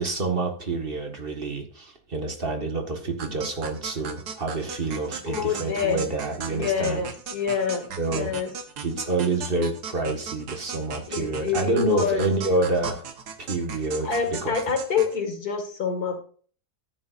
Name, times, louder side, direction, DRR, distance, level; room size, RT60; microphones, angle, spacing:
voice 1, 0.0-7.0 8.0-8.3 8.8-13.1 13.4-14.5, right 2 dB, 35° right, 4 dB, 1.8 m, -27 dB
sound 1, 3.2-15.2, right 6 dB, 85° right, 1.8 m, -37 dB
voice 2, 5.3-6.0 6.5-8.5 11.1-12.3 14.0-16.2, left 6 dB, 70° left, 4 dB, 2.6 m, -27 dB
14.0 x 10.0 x 2.6 m, 0.43 s
omnidirectional pair, 1.7 m